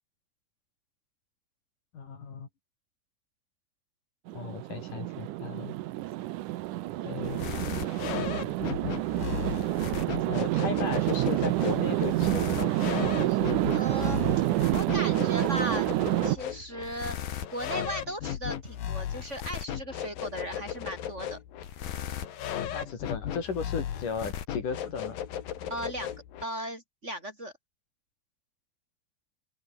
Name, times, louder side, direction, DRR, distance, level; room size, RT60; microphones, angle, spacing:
voice 1, 1.9-2.5 4.3-5.8 7.0-7.4 10.3-13.7 22.7-25.2, left 5 dB, 65° left, 5.4 m, -36 dB
sound 1, 4.3-16.4, right 16 dB, 75° right, 2.2 m, -28 dB
sound 2, 7.2-26.4, left 10 dB, 85° left, 3.9 m, -36 dB
voice 2, 13.7-14.2 14.7-15.9 16.2-17.2 17.5-21.4 25.7-26.1 26.4-27.5, right 1 dB, 20° right, 6.9 m, -36 dB
open air
omnidirectional pair, 3.9 m